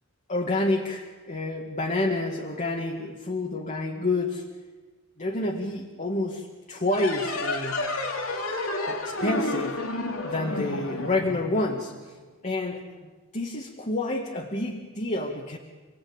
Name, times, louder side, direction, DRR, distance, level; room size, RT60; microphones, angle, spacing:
voice 1, 0.3-4.5 5.2-8.0 8.8-9.9 10.2-12.1 12.4-12.9 13.3-15.6, left 2 dB, 35° left, 1 dB, 2.0 m, -29 dB
sound 1, 6.9-12.1, left 2 dB, 85° left, 3.3 m, -31 dB
28.5 x 19.5 x 8.9 m, 1.3 s
head